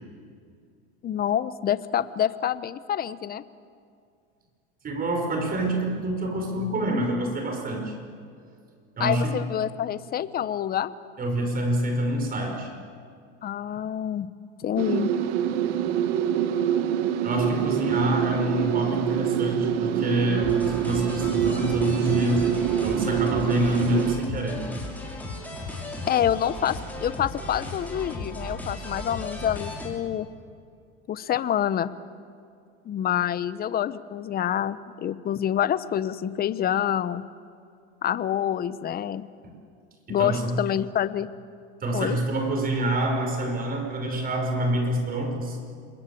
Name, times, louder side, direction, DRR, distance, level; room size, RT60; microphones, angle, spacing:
voice 1, 1.0-3.4 9.0-10.9 13.4-14.3 14.6-15.1 26.1-30.3 31.1-31.9 32.8-37.2 38.0-39.3 40.1-41.3 41.9-42.2, left 10 dB, 25° left, 15 dB, 0.9 m, -27 dB
voice 2, 4.8-8.0 9.0-9.3 11.2-12.7 17.2-24.7 40.1-40.6 41.8-45.6, right 1 dB, 25° right, 4 dB, 5.4 m, -27 dB
sound 1, 14.8-24.1, right 9 dB, 75° right, 1.8 m, -25 dB
Say What You Mean Loop, 20.4-29.9, left 2 dB, 5° left, 5.6 m, -36 dB
28.0 x 21.5 x 8.6 m, 2.3 s
supercardioid pair, 130°, 34 cm